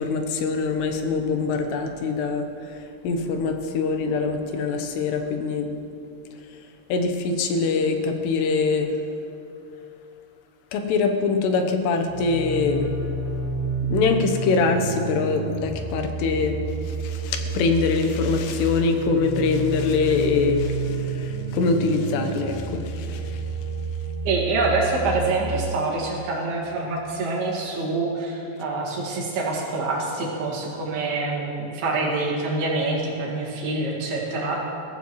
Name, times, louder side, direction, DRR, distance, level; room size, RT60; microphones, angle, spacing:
voice 1, 0.0-2.4 3.0-5.7 6.9-8.9 10.7-12.9 13.9-16.6 17.0-20.7 21.5-22.6 23.1-23.2, left 4 dB, 80° left, 5 dB, 3.1 m, -23 dB
sound 1, 12.0-25.7, right 3 dB, 60° left, 5.2 m, -30 dB
voice 2, 24.3-34.6, right 3 dB, 70° right, -3 dB, 3.8 m, -26 dB
21.5 x 14.5 x 3.1 m, 2.6 s
omnidirectional pair, 4.8 m